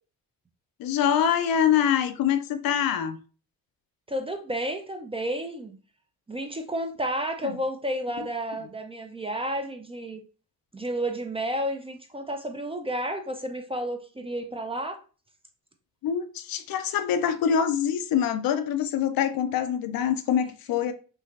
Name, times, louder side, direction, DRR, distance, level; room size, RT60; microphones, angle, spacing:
voice 1, 0.8-3.2 7.4-7.5 16.0-20.9, left 8 dB, 65° left, 0.5 m, -25 dB
voice 2, 4.1-5.8 6.3-10.2 10.7-15.0, right 1 dB, 15° right, 0.4 m, -31 dB
3.1 x 2.4 x 2.3 m
supercardioid pair, 60°, 39 cm